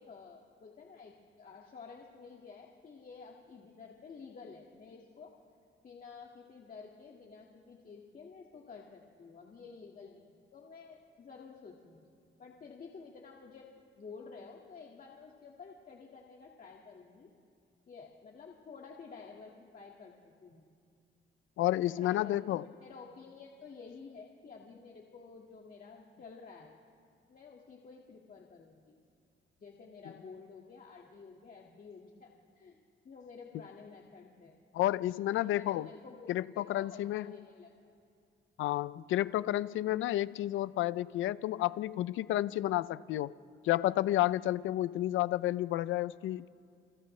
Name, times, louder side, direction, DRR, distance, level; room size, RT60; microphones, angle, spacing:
voice 1, 0.0-5.3 5.8-12.1 12.4-13.7 14.0-17.3 17.9-20.7 21.8-26.7 27.3-29.0 29.6-32.8 33.0-34.5 35.4-37.9, left 5 dB, 45° left, -1 dB, 2.1 m, -51 dB
voice 2, 21.6-22.6 34.7-35.9 36.3-37.3 38.6-43.3 43.6-46.5, left 14 dB, 80° left, 17 dB, 0.5 m, -31 dB
28.5 x 28.0 x 3.3 m, 2.4 s
cardioid pair, 90°, 20 cm